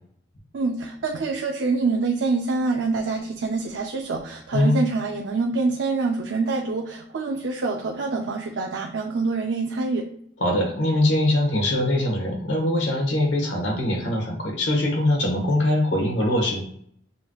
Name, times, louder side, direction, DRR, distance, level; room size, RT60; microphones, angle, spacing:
voice 1, 0.5-10.0, right 3 dB, 75° right, 1 dB, 0.5 m, -26 dB
voice 2, 10.4-16.6, left 1 dB, 75° left, -1 dB, 1.4 m, -22 dB
7.0 x 3.0 x 2.3 m, 0.66 s
head